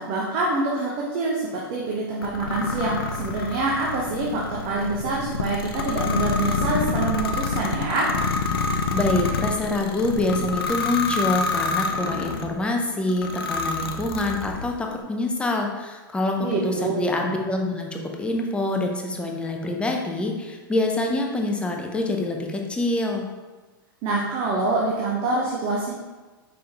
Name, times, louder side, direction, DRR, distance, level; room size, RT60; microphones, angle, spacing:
voice 1, 0.0-8.1 16.4-16.9 24.0-25.9, right 3 dB, 45° right, -4 dB, 0.9 m, -26 dB
sound 1, 2.2-12.5 13.1-14.7, left 4 dB, 90° left, 0.5 m, -27 dB
voice 2, 8.9-23.2, left 2 dB, 10° left, 1 dB, 0.6 m, -26 dB
5.2 x 3.5 x 2.9 m, 1.3 s
hypercardioid pair, 125°, 12 cm